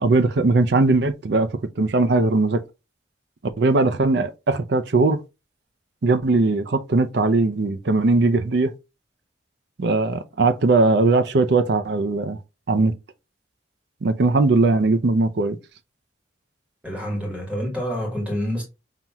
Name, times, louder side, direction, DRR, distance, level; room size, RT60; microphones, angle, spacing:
voice 1, 0.0-1.5 1.8-2.6 3.6-5.2 6.0-8.7 9.8-12.4 12.7-12.9 14.0-15.6, right 3 dB, 60° right, 0.5 m, -19 dB
voice 2, 16.8-18.6, equal, 5° right, 1.7 m, -27 dB
5.7 x 2.9 x 2.3 m
head